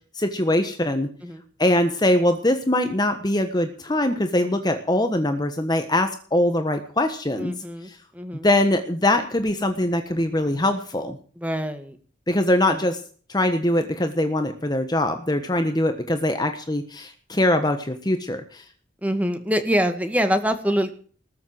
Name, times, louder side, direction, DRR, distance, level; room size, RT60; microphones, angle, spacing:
voice 1, 0.1-1.1 1.6-7.5 7.9-8.0 8.4-11.2 12.3-13.0 13.3-18.6, left 1 dB, 20° left, 7 dB, 1.3 m, -22 dB
voice 2, 7.4-8.5 11.4-12.0 12.7-12.8 19.0-20.9, equal, 10° right, 8 dB, 2.0 m, -25 dB
19.5 x 7.4 x 7.8 m, 0.43 s
head